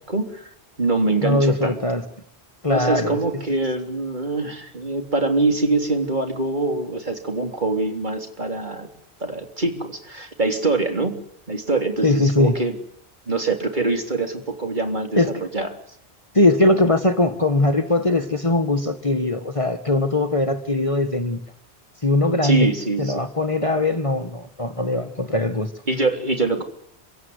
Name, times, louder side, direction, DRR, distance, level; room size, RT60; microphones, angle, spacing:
voice 1, 0.1-0.5 0.8-1.8 2.7-8.9 9.2-11.2 11.5-12.7 13.3-15.2 15.5-15.7 22.4-23.3 25.9-26.6, right 3 dB, 45° right, 4 dB, 3.7 m, -24 dB
voice 2, 1.2-2.0 2.6-3.2 12.0-12.6 15.2-15.3 16.3-21.4 22.0-22.7 23.0-25.7, left 2 dB, 30° left, 8 dB, 1.6 m, -20 dB
27.0 x 17.0 x 9.7 m, 0.71 s
omnidirectional pair, 1.1 m